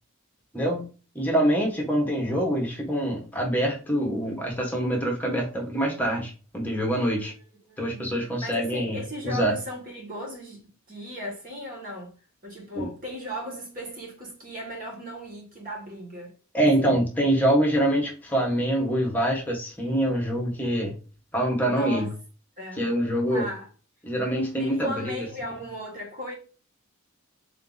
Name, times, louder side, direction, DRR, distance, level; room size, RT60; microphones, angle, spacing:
voice 1, 0.5-0.9 1.1-7.3 7.8-9.0 9.2-9.5 12.8-12.9 16.5-20.9 21.3-22.1 22.8-23.4 24.0-25.3, right 1 dB, 10° left, 1.0 m, -25 dB
voice 2, 7.7-10.6 10.9-12.2 12.4-17.0 21.6-22.2 22.6-22.9 23.3-23.7 24.6-26.3, equal, 40° right, 1.4 m, -37 dB
3.8 x 2.7 x 3.8 m
head